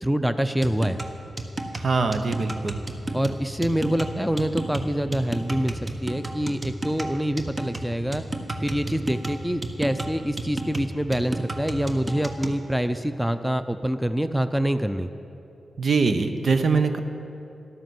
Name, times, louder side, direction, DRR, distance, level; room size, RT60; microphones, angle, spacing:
voice 1, 0.0-1.0 3.1-8.3 8.6-15.1, right 1 dB, 5° right, 10 dB, 0.7 m, -26 dB
sound 1, 0.6-12.6, right 1 dB, 35° right, 1.4 m, -32 dB
voice 2, 1.8-2.8 15.8-17.0, right 4 dB, 60° right, 8 dB, 0.9 m, -23 dB
12.5 x 11.5 x 7.8 m, 2.8 s
cardioid pair, 50°, 0 cm